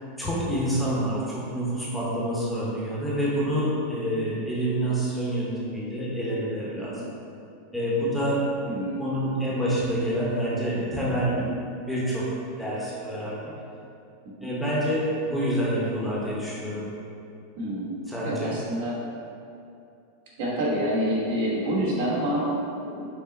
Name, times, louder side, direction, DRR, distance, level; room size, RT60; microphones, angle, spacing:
voice 1, 0.2-7.0 7.7-8.5 9.0-11.5 11.9-13.5 14.4-16.9 18.1-18.5, right 1 dB, 5° left, -7 dB, 0.8 m, -27 dB
voice 2, 8.7-9.1 14.3-14.5 17.6-19.0 20.4-22.5 22.8-23.0, equal, 70° right, -5 dB, 1.3 m, -28 dB
5.7 x 2.0 x 3.9 m, 2.5 s
supercardioid pair, 145°, 0 cm